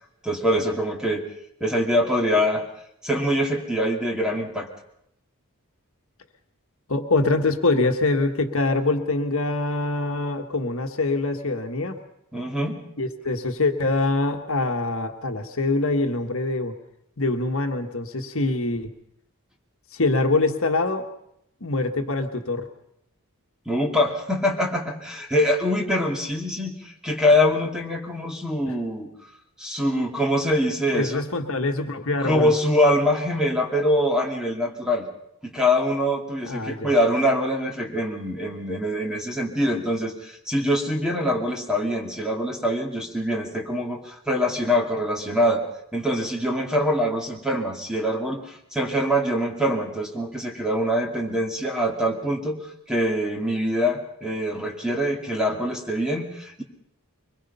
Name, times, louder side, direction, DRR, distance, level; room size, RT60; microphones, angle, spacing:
voice 1, 0.2-1.2 1.6-2.6 3.0-4.7 12.3-12.8 23.7-29.1 29.6-31.2 32.2-35.1 35.4-45.6 45.9-56.6, equal, 5° right, 0 dB, 2.3 m, -24 dB
voice 2, 6.9-12.0 13.0-16.7 17.2-18.9 19.9-21.0 21.6-22.7 28.7-28.8 30.9-32.5 36.4-36.9, left 2 dB, 65° left, 5 dB, 1.5 m, -24 dB
23.5 x 21.5 x 5.6 m, 0.77 s
head